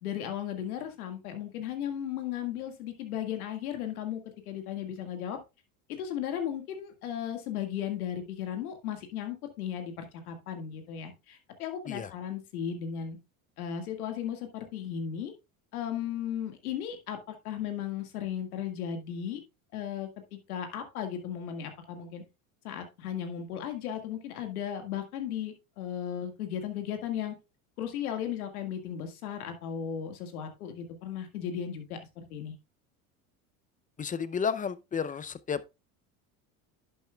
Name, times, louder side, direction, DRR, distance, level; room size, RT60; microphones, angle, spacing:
voice 1, 0.0-4.2 4.5-5.4 6.0-13.2 13.6-15.3 15.7-19.4 19.7-22.2 22.6-27.4 27.8-32.5, left 9 dB, 85° left, 1.8 m, -36 dB
voice 2, 34.0-35.6, left 6 dB, 20° left, 0.5 m, -32 dB
11.0 x 7.2 x 2.3 m
hypercardioid pair, 85°, 43 cm